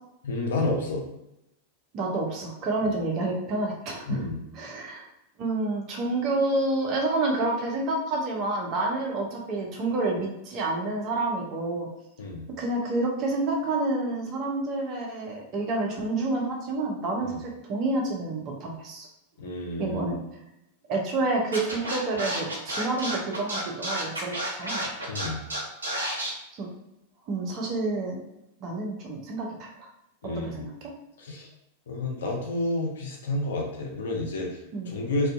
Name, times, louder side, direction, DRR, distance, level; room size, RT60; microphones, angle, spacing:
voice 1, 0.2-1.0 2.8-2.9 4.1-4.4 12.2-12.5 17.2-17.4 19.4-20.2 25.1-25.4 30.2-30.7 31.2-31.5 31.9-35.3, left 2 dB, 60° left, 0 dB, 0.6 m, -30 dB
voice 2, 1.9-4.2 4.5-5.0 5.4-11.9 12.6-19.1 19.8-20.2 20.9-24.8 26.6-26.7 27.3-28.2 28.6-29.9 30.2-30.9 34.7-34.9, right 2 dB, 35° right, 0 dB, 0.6 m, -29 dB
Scratching (performance technique), 21.5-26.3, right 1 dB, 75° right, 0.6 m, -30 dB
2.5 x 2.3 x 2.4 m, 0.88 s
figure-of-eight pair, 90°, 0 cm